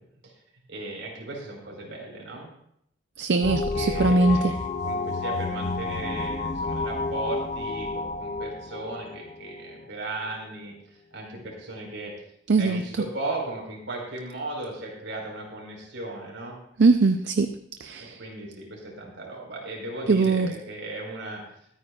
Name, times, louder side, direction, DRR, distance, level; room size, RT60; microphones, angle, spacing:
voice 1, 0.7-2.5 3.7-4.6 4.8-12.1 12.6-16.6 18.0-21.4, right 2 dB, 85° right, 0 dB, 4.5 m, -36 dB
voice 2, 3.2-4.4 12.5-12.8 16.8-17.5 17.8-18.2 20.1-20.5, right 3 dB, 65° right, 8 dB, 0.5 m, -21 dB
sound 1, 3.4-9.8, left 3 dB, 40° left, 0.4 m, -30 dB
23.0 x 9.5 x 2.4 m, 0.72 s
head